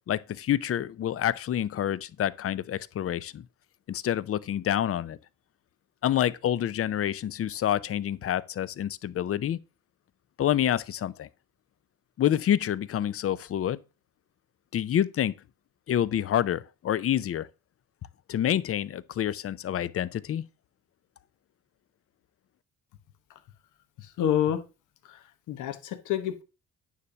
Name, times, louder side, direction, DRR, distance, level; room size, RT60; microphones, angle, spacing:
voice 1, 0.1-3.4 3.9-5.2 6.0-9.6 10.4-11.3 12.2-13.8 14.7-15.3 15.9-17.5 18.3-20.4, left 10 dB, 50° left, 0.6 m, -27 dB
voice 2, 24.0-24.6 25.1-25.2 25.5-26.4, left 10 dB, 85° left, 1.1 m, -28 dB
9.5 x 3.3 x 6.9 m
cardioid pair, 90°, 30 cm